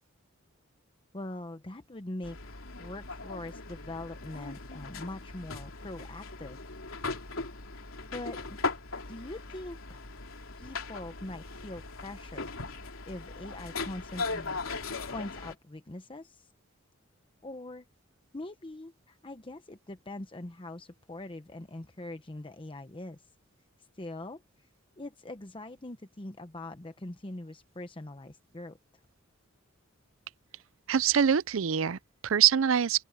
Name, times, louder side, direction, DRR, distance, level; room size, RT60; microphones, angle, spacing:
voice 1, 1.1-6.6 8.1-8.6 9.1-10.0 10.6-12.7 13.1-14.6 15.1-16.5 17.4-17.8 18.3-23.2 23.9-24.4 25.0-28.8, left 2 dB, 25° left, 0.9 m, -42 dB
sound 1, 2.2-15.5, left 3 dB, 80° left, 3.4 m, -39 dB
voice 2, 30.9-33.0, right 8 dB, 70° right, 0.5 m, -24 dB
open air
head